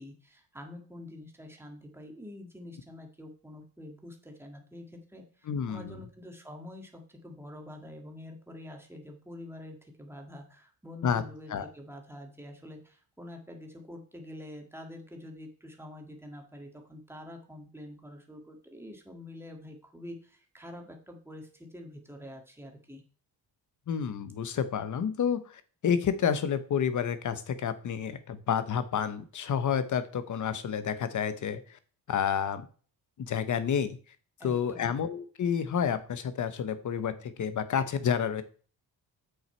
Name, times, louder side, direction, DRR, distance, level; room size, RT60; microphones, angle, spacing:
voice 1, 0.0-23.0 34.4-34.9, left 1 dB, 5° right, 2 dB, 1.8 m, -46 dB
voice 2, 5.5-5.9 11.0-11.2 11.5-11.7 23.9-31.8 32.1-32.7 33.2-34.0 34.4-38.4, left 7 dB, 45° left, 12 dB, 1.0 m, -30 dB
8.0 x 6.4 x 4.5 m, 0.41 s
cardioid pair, 140°, 41 cm